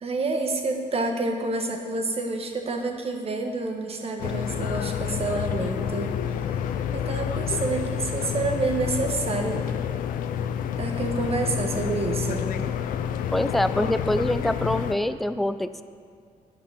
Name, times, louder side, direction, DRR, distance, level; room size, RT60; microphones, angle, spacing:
voice 1, 0.0-6.1 6.9-9.7 10.8-12.5, right 3 dB, 45° right, 3 dB, 1.3 m, -28 dB
sound 1, 4.2-14.9, left 9 dB, 80° left, 0.5 m, -29 dB
voice 2, 13.3-15.8, left 1 dB, ahead, 12 dB, 0.4 m, -25 dB
9.8 x 5.6 x 6.3 m, 2.1 s
cardioid pair, 70°, 14 cm